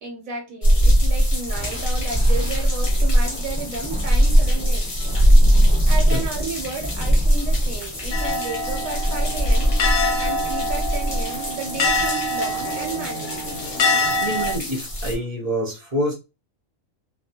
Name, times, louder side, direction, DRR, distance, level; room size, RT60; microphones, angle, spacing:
voice 1, 0.0-9.8 10.2-13.6, right 4 dB, 80° right, 1.1 m, -33 dB
sound 1, 0.6-15.2, equal, 30° left, 0.7 m, -20 dB
Thunder, 1.4-10.2, equal, 5° right, 1.0 m, -35 dB
sound 2, 8.1-14.5, left 2 dB, 65° left, 0.8 m, -25 dB
voice 2, 14.2-16.1, equal, 35° right, 0.7 m, -26 dB
2.3 x 2.2 x 2.7 m
omnidirectional pair, 1.4 m